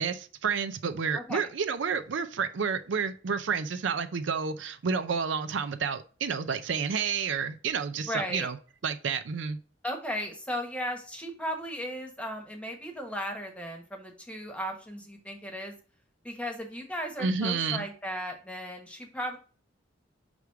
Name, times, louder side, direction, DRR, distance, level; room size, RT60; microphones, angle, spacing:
voice 1, 0.0-8.6 8.8-9.6 17.2-17.9, right 5 dB, 70° right, 0.5 m, -30 dB
voice 2, 1.1-1.5 8.1-8.5 9.8-15.7 16.2-19.4, equal, 5° left, 1.2 m, -36 dB
6.2 x 3.5 x 4.7 m
head